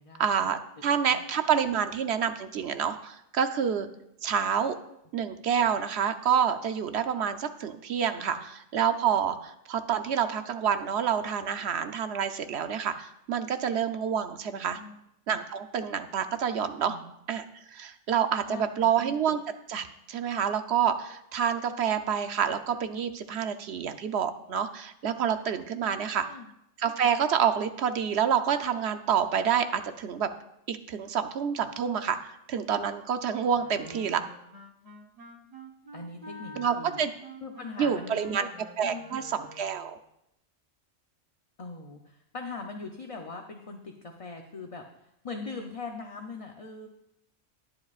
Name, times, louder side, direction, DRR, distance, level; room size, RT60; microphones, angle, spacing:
voice 1, 0.2-3.9 4.2-4.8 5.1-14.8 15.3-17.0 17.3-17.4 17.7-19.4 19.7-26.3 26.8-30.3 30.7-34.2 36.6-37.1 37.8-38.5 38.8-40.0, right 8 dB, 65° right, 9 dB, 0.9 m, -28 dB
voice 2, 18.5-18.9 25.9-26.5 33.8-34.2 35.9-37.0 37.4-38.5 38.8-39.1 41.6-44.8 45.2-46.9, left 3 dB, 35° left, 3 dB, 0.7 m, -41 dB
Wind instrument woodwind instrument, 33.5-39.9, equal, 35° right, 1.0 m, -48 dB
20.5 x 7.9 x 2.5 m, 0.81 s
omnidirectional pair, 1.3 m